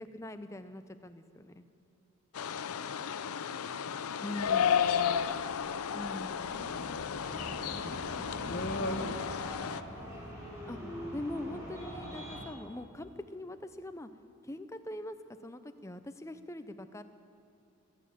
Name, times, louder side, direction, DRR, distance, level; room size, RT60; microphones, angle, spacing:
voice 1, 0.0-1.6 4.2-4.7 5.9-6.3 10.7-10.8 11.1-14.1 14.4-15.2 15.4-17.0, left 1 dB, 15° left, 10 dB, 0.5 m, -42 dB
sound 1, 2.4-9.8, left 8 dB, 80° left, 0.5 m, -33 dB
voice 2, 2.6-3.0 3.2-4.1 6.0-9.0 9.7-9.9, right 1 dB, 70° right, -11 dB, 4.3 m, -55 dB
sound 2, 4.5-10.3, left 1 dB, 45° left, 0.9 m, -42 dB
sound 3, 7.2-12.4, equal, 15° right, 3.5 m, -43 dB
21.5 x 9.4 x 7.1 m, 2.7 s
head